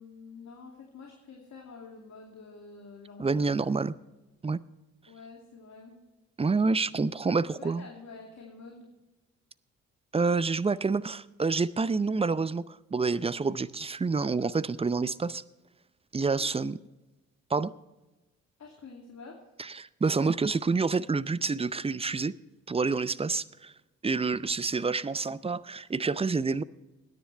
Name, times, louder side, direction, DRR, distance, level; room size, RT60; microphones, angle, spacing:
voice 1, 0.0-3.6 5.1-6.0 7.3-8.9 16.3-16.5 18.6-19.4, left 4 dB, 45° left, -1 dB, 2.5 m, -48 dB
voice 2, 3.2-3.9 4.4-4.6 6.4-7.9 10.1-15.4 16.1-16.8 17.5-17.7 19.6-22.3 22.7-23.7 24.0-26.6, right 4 dB, 15° right, 19 dB, 0.6 m, -28 dB
21.0 x 10.5 x 3.3 m, 1.1 s
figure-of-eight pair, 40°, 39 cm